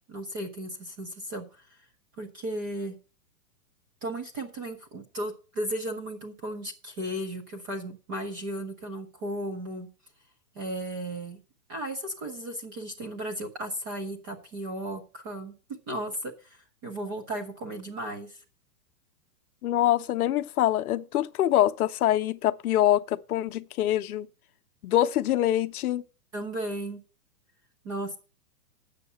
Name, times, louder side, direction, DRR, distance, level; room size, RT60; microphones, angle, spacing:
voice 1, 0.1-1.5 2.2-3.0 4.0-9.9 10.6-11.4 11.7-15.5 15.9-18.4 26.3-27.0 27.8-28.2, right 1 dB, 15° right, 0.4 m, -35 dB
voice 2, 19.6-24.3 24.8-26.0, left 13 dB, 65° left, 0.7 m, -24 dB
8.3 x 6.5 x 6.7 m
hypercardioid pair, 140°, 49 cm